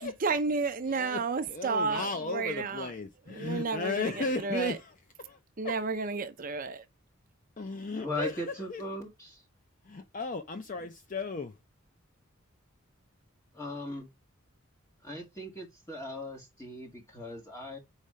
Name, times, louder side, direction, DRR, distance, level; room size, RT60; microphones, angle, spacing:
voice 1, 0.0-2.9 3.3-4.8 5.6-6.8, right 4 dB, 40° right, 0.6 m, -32 dB
voice 2, 0.9-1.2 1.5-4.9 5.2-5.4 5.6-5.8 7.6-8.8 9.8-11.5, left 3 dB, 40° left, 0.5 m, -35 dB
voice 3, 7.9-9.4 13.5-14.1 15.0-17.8, left 1 dB, 15° left, 2.0 m, -38 dB
4.9 x 4.3 x 5.5 m
head